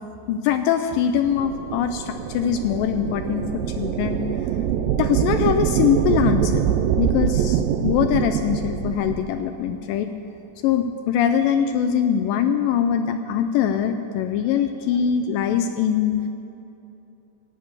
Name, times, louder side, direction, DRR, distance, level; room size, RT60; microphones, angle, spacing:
voice 1, 0.3-4.2 4.9-6.6 7.0-10.1 10.6-16.3, left 8 dB, 85° left, 7 dB, 2.3 m, -22 dB
sound 1, 1.3-9.3, right 9 dB, 85° right, 2.3 m, -24 dB
17.5 x 8.7 x 7.2 m, 2.8 s
omnidirectional pair, 4.0 m